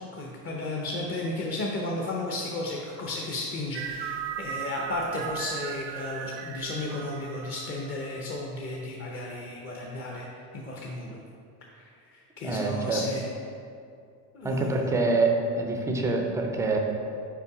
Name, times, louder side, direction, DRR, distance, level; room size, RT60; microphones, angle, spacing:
voice 1, 0.1-11.2 11.7-13.2 14.3-14.9, left 2 dB, 30° left, -2 dB, 0.7 m, -34 dB
sound 1, 3.7-8.5, right 9 dB, 85° right, 0.7 m, -37 dB
voice 2, 12.4-13.0 14.4-16.8, right 3 dB, 5° right, 2 dB, 0.4 m, -26 dB
5.7 x 4.5 x 4.7 m, 2.4 s
supercardioid pair, 120°, 48 cm